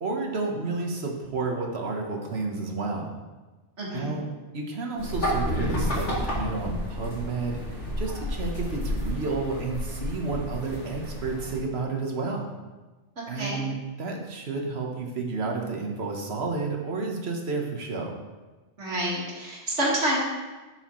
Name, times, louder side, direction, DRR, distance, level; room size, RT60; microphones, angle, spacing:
voice 1, 0.0-3.2 3.9-4.3 4.5-12.5 13.3-18.2, right 3 dB, 60° right, 1 dB, 1.5 m, -31 dB
voice 2, 3.8-4.1 13.2-13.6 18.8-20.2, right 1 dB, 80° right, -4 dB, 2.4 m, -28 dB
sound 1, 5.0-11.6, left 1 dB, 80° left, 2.2 m, -31 dB
11.5 x 6.4 x 3.1 m, 1.2 s
omnidirectional pair, 1.2 m